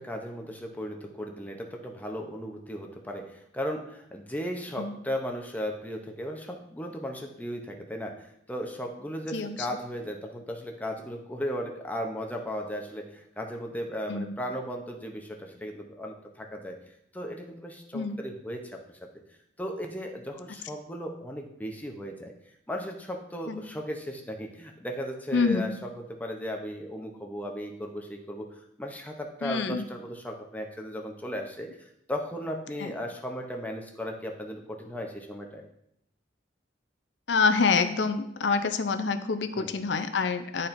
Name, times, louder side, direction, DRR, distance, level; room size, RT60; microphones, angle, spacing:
voice 1, 0.0-8.1 8.5-16.8 17.1-18.8 19.6-22.3 22.7-31.7 32.1-35.7 39.6-39.8, equal, 10° left, 2 dB, 0.6 m, -36 dB
voice 2, 25.3-25.8 29.4-29.8 32.8-32.9 37.3-40.7, left 4 dB, 70° left, 10 dB, 0.5 m, -26 dB
10.5 x 4.3 x 2.6 m, 0.76 s
head